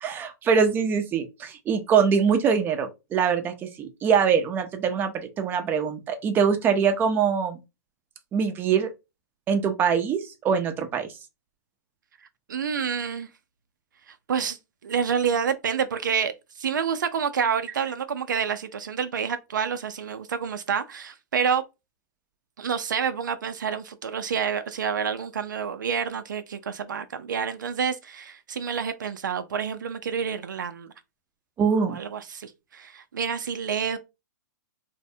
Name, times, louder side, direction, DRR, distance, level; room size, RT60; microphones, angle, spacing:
voice 1, 0.0-7.6 8.3-8.9 9.5-11.1 31.6-32.0, right 6 dB, 20° right, 0.5 m, -23 dB
voice 2, 12.5-13.3 14.1-14.6 14.8-21.6 22.6-30.9 31.9-34.0, right 7 dB, 80° right, 0.4 m, -28 dB
2.6 x 2.1 x 2.6 m
hypercardioid pair, 130°, 10 cm